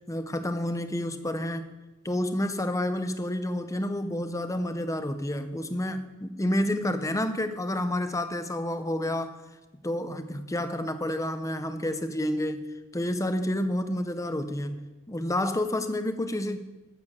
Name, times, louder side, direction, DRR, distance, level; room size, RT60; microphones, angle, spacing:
voice 1, 0.1-1.7 2.0-9.4 9.8-12.6 12.9-16.6, left 1 dB, 15° left, 9 dB, 0.8 m, -29 dB
12.5 x 7.1 x 7.3 m, 1.1 s
head